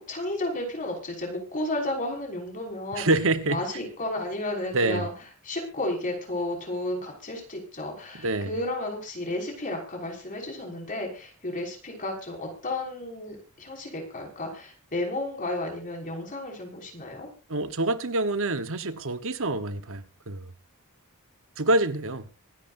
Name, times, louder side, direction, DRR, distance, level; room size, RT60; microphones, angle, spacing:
voice 1, 0.1-3.0 3.5-5.1 5.4-17.3, left 1 dB, 40° left, 5.9 m, -32 dB
voice 2, 2.9-3.6 4.7-5.1 8.1-8.6 17.5-20.5 21.6-22.2, right 2 dB, 65° right, 1.2 m, -26 dB
25.5 x 11.5 x 2.7 m
head